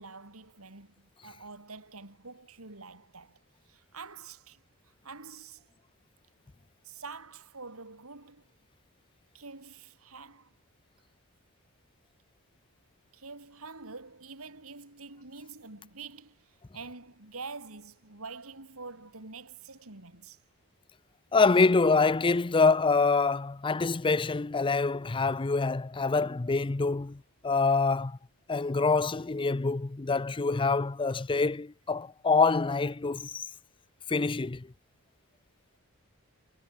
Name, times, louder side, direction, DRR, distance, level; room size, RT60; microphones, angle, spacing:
voice 1, 0.0-3.4 3.7-4.6 5.0-5.6 6.8-8.5 9.3-10.5 13.1-16.4 16.7-20.4, right 4 dB, 75° right, 3.6 m, -46 dB
voice 2, 21.3-28.2 28.5-33.4 34.1-34.7, left 4 dB, 25° left, 0.5 m, -26 dB
head